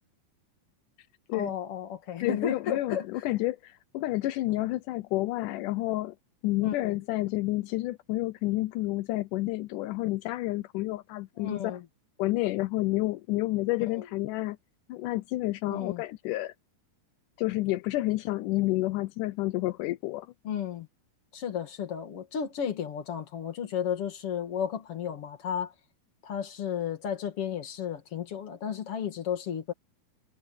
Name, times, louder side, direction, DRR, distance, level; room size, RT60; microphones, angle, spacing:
voice 1, 1.3-3.1 6.6-7.0 11.4-11.8 13.9-14.1 15.7-16.0 20.4-20.9 21.3-25.7 26.2-29.7, left 8 dB, 45° left, 2.7 m, -33 dB
voice 2, 2.2-6.2 6.4-11.6 12.2-14.6 14.9-16.5 17.4-20.3, left 18 dB, 80° left, 1.8 m, -30 dB
omnidirectional pair, 4.4 m